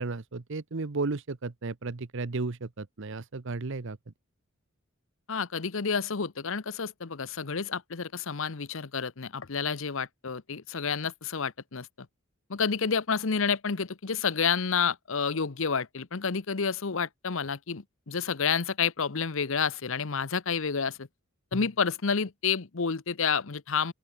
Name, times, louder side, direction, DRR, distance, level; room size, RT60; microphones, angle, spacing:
voice 1, 0.0-4.0, right 3 dB, 60° right, 0.9 m, -34 dB
voice 2, 5.3-11.9 12.5-21.1 21.5-23.9, left 6 dB, 65° left, 0.9 m, -29 dB
open air
head